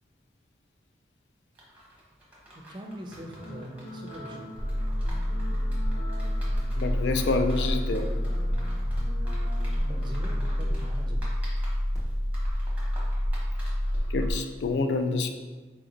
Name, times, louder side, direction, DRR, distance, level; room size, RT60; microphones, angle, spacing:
sound 1, 1.6-14.4, right 1 dB, 10° right, 0.9 m, -49 dB
voice 1, 2.5-4.5 9.8-11.3, right 1 dB, 25° right, 1 dB, 0.5 m, -42 dB
sound 2, 3.1-10.8, left 1 dB, 55° left, 0.8 m, -43 dB
sound 3, 4.6-14.3, equal, 20° left, 1.0 m, -28 dB
voice 2, 6.8-8.1 14.1-15.3, left 3 dB, 85° left, 6 dB, 0.4 m, -27 dB
4.2 x 2.9 x 3.8 m, 1.3 s
head